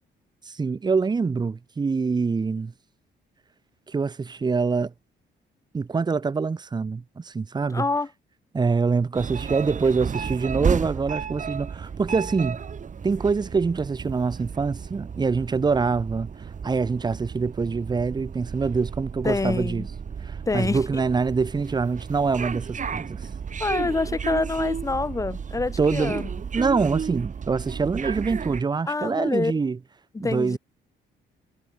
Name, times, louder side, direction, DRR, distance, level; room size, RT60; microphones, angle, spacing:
voice 1, 0.5-2.7 3.9-4.9 5.7-7.9 8.5-12.6 13.0-16.3 16.6-19.8 20.2-23.2 25.8-26.2 26.5-29.8 30.2-30.6, right 4 dB, 20° right, 0.6 m, -25 dB
voice 2, 7.7-8.1 19.2-19.9 20.5-21.0 23.6-26.3 28.9-29.5 30.1-30.6, left 3 dB, 15° left, 0.8 m, -26 dB
sound 1, 9.1-28.6, right 6 dB, 40° right, 1.5 m, -33 dB
cardioid pair, 90°, 20 cm